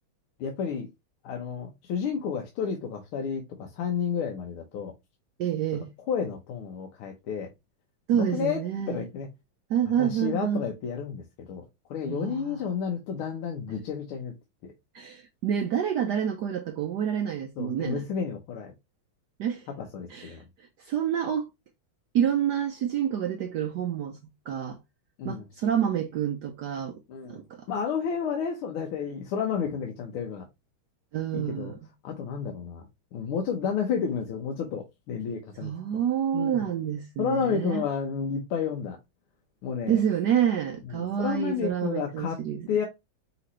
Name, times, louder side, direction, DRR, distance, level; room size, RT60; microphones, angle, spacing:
voice 1, 0.4-0.9 1.2-4.9 6.1-7.5 8.1-9.3 10.0-11.6 11.9-14.3 14.6-14.7 17.6-18.7 19.8-20.5 25.2-25.5 27.1-30.5 31.3-31.7 32.0-32.9 33.1-35.7 36.3-36.7 37.2-39.0 39.6-40.0 40.9-42.4 42.7-42.9, left 6 dB, 85° left, 1.8 m, -31 dB
voice 2, 5.4-5.9 8.1-9.0 9.7-10.6 12.1-12.6 14.9-18.0 19.4-19.7 20.1-21.5 22.1-24.2 24.5-24.8 25.2-27.0 27.3-27.7 31.1-31.8 35.6-37.8 39.9-42.7, right 9 dB, 70° right, 1.0 m, -28 dB
5.7 x 3.0 x 3.0 m
omnidirectional pair, 2.3 m